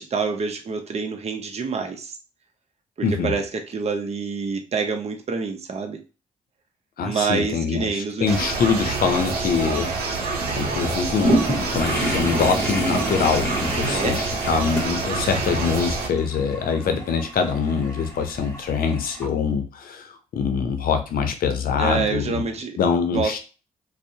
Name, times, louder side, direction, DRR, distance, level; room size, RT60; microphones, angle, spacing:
voice 1, 0.0-2.2 3.0-6.0 7.0-8.5 13.7-14.2 21.8-22.8 23.1-23.4, right 4 dB, 45° right, 5 dB, 0.6 m, -27 dB
voice 2, 3.0-3.3 7.0-22.4 22.8-23.4, left 5 dB, 70° left, 7 dB, 0.5 m, -24 dB
sound 1, 8.3-16.1, right 3 dB, 85° right, 0.7 m, -27 dB
sound 2, 11.2-19.3, right 1 dB, 15° left, 1.1 m, -29 dB
2.6 x 2.0 x 2.6 m, 0.33 s
supercardioid pair, 55°, 16 cm